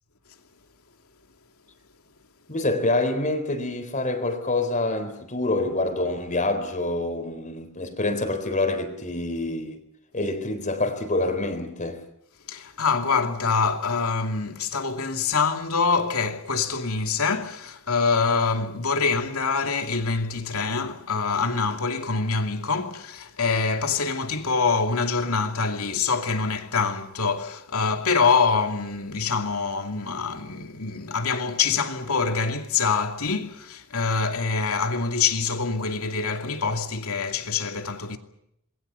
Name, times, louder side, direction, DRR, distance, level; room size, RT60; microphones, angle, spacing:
voice 1, 2.5-9.8 10.1-12.0, left 2 dB, 35° left, 3.9 m, -26 dB
voice 2, 12.5-38.2, left 4 dB, 75° left, 2.6 m, -25 dB
27.0 x 22.0 x 6.9 m
head